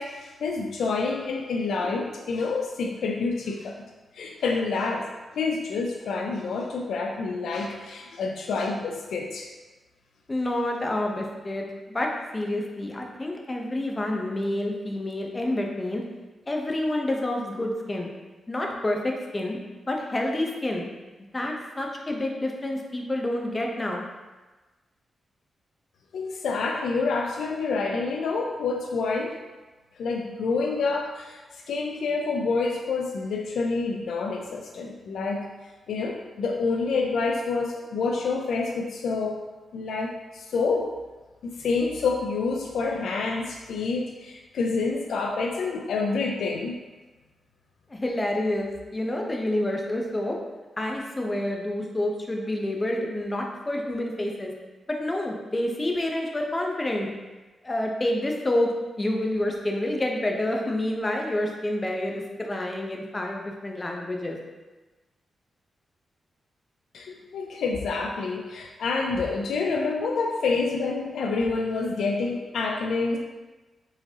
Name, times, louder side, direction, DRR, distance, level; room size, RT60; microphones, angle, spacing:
voice 1, 0.0-3.8 4.1-5.1 5.3-9.5 26.1-29.4 30.0-35.5 35.9-39.4 39.7-40.9 41.4-46.8 66.9-73.2, left 4 dB, 85° left, 2 dB, 0.4 m, -28 dB
voice 2, 10.3-11.6 11.9-16.0 16.5-18.1 18.5-19.6 19.9-20.8 21.3-24.0 47.9-50.4 50.8-54.5 54.9-57.1 57.6-58.7 59.0-64.4, left 1 dB, 25° left, 0 dB, 0.7 m, -28 dB
4.8 x 3.9 x 2.8 m, 1.2 s
cardioid pair, 95°, 0 cm